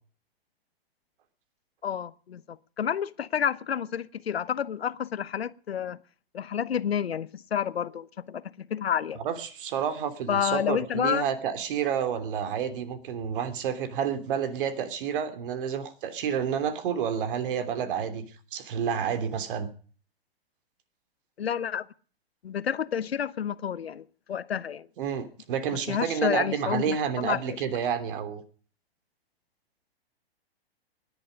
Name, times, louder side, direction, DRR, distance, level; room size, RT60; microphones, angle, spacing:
voice 1, 1.8-6.0 6.3-9.2 10.3-11.3 21.4-21.9 22.4-24.9 25.7-27.4, left 8 dB, 80° left, 1.0 m, -30 dB
voice 2, 9.2-18.2 18.5-19.7 25.0-28.4, right 8 dB, 60° right, 3.1 m, -29 dB
19.5 x 11.0 x 5.3 m
hypercardioid pair, 115°, 30 cm